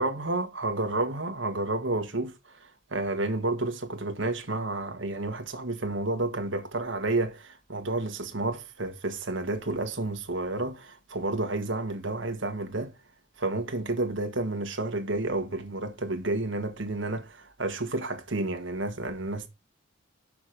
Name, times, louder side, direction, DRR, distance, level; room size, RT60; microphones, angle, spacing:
voice 1, 0.0-12.9 13.4-19.5, right 2 dB, 65° right, 1.6 m, -30 dB
6.3 x 5.9 x 5.0 m
head